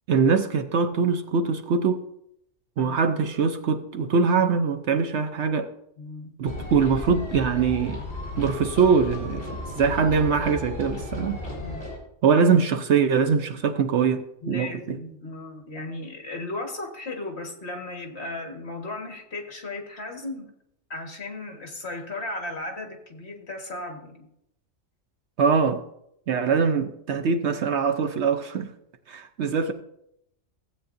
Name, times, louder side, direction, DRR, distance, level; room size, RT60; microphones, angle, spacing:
voice 1, 0.1-2.1 2.8-5.7 6.4-8.0 8.4-9.5 9.8-11.4 12.2-15.0 25.4-25.8 26.3-28.7 29.1-29.7, right 5 dB, 65° right, 0.9 m, -22 dB
voice 2, 6.0-6.3 11.5-11.9 14.4-20.5 20.9-24.3 29.4-29.6, left 2 dB, 55° left, 1.8 m, -36 dB
sound 1, 6.5-12.0, left 2 dB, 35° left, 3.2 m, -34 dB
15.5 x 8.3 x 2.6 m
omnidirectional pair, 1.4 m